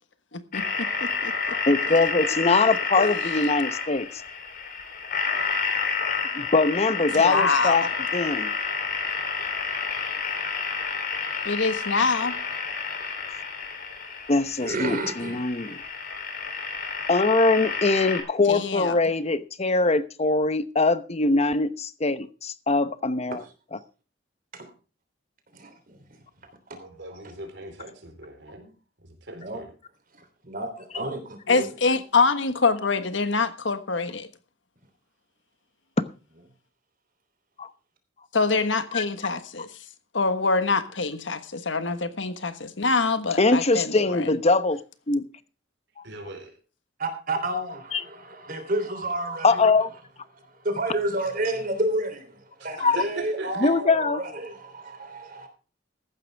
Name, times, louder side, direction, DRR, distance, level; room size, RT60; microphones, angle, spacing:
voice 1, 0.3-1.3 2.2-2.3 2.6-3.2 7.1-7.9 11.4-12.4 18.5-19.0 31.5-34.3 38.3-39.7 40.1-44.3, left 4 dB, 75° left, 1.4 m, -25 dB
sound 1, 0.5-18.2, left 5 dB, 50° left, 3.5 m, -30 dB
voice 2, 1.5-4.1 6.3-7.8 8.1-8.5 14.3-15.8 17.1-23.4 37.6-37.7 38.9-39.0 43.4-44.8 45.1-45.3 46.0-46.1 47.9-48.0 49.4-49.9 52.8-53.0 53.6-54.2, left 3 dB, 35° left, 0.9 m, -22 dB
voice 3, 14.6-15.4 23.3-23.4 24.5-24.7 25.5-26.0 26.7-26.8 27.1-27.2 29.4-29.6 30.2-31.2 31.5-31.7 47.0-49.7 50.3-55.5, right 1 dB, 50° right, 3.3 m, -30 dB
voice 4, 26.8-28.7 29.0-29.7 30.9-31.2 46.0-46.5 52.6-53.7, right 2 dB, 65° right, 4.2 m, -39 dB
15.0 x 11.5 x 3.5 m
head